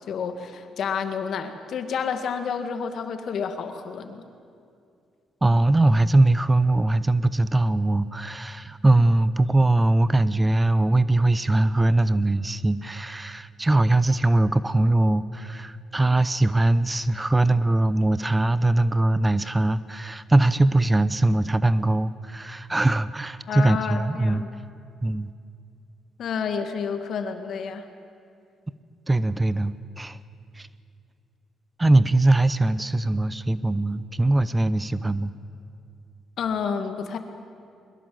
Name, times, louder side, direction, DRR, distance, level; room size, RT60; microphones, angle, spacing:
voice 1, 0.1-4.3 23.5-24.5 26.2-27.9 36.4-37.2, left 6 dB, 65° left, 7 dB, 2.0 m, -30 dB
voice 2, 5.4-24.4 25.0-25.3 29.1-30.2 30.5-30.7 31.8-35.3, right 2 dB, 15° right, 16 dB, 0.6 m, -21 dB
22.0 x 21.5 x 7.8 m, 2.4 s
cardioid pair, 90°, 0 cm